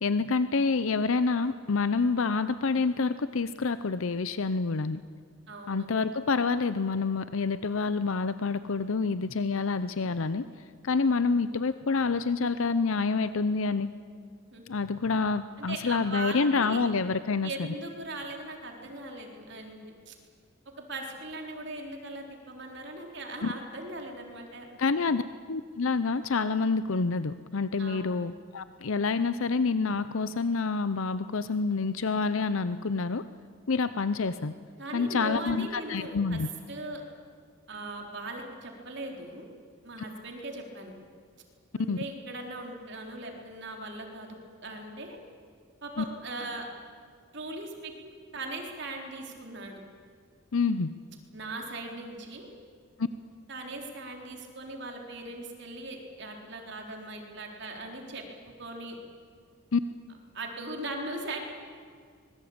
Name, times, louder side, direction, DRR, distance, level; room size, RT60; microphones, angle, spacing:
voice 1, 0.0-5.0 5.7-10.5 10.8-13.9 14.7-17.5 23.4-23.5 24.8-25.2 25.5-33.2 33.7-34.5 34.9-36.5 41.9-42.0 46.0-46.1 50.5-50.9 59.7-59.8, left 4 dB, 70° left, 13 dB, 0.7 m, -27 dB
voice 2, 5.5-5.9 14.5-14.7 15.6-16.9 17.4-19.8 20.1-20.2 20.8-24.7 25.0-25.1 27.8-28.1 34.8-36.4 36.7-37.0 37.7-39.5 39.8-40.9 41.8-45.2 45.8-46.7 47.3-49.8 51.3-52.5 53.5-58.2 58.6-59.0 60.3-61.4, right 2 dB, 55° right, 2 dB, 3.9 m, -39 dB
24.5 x 22.0 x 8.7 m, 2.1 s
head